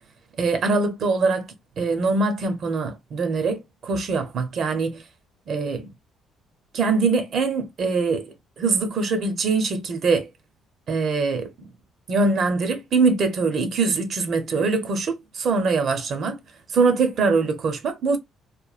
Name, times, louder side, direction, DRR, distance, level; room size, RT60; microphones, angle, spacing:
voice 1, 0.4-1.5 1.8-5.0 5.5-5.9 6.7-8.3 8.6-10.3 10.9-11.5 12.1-16.4 16.7-18.2, right 4 dB, 45° right, 0.5 m, -23 dB
2.9 x 2.2 x 2.3 m
cardioid pair, 145°, 0 cm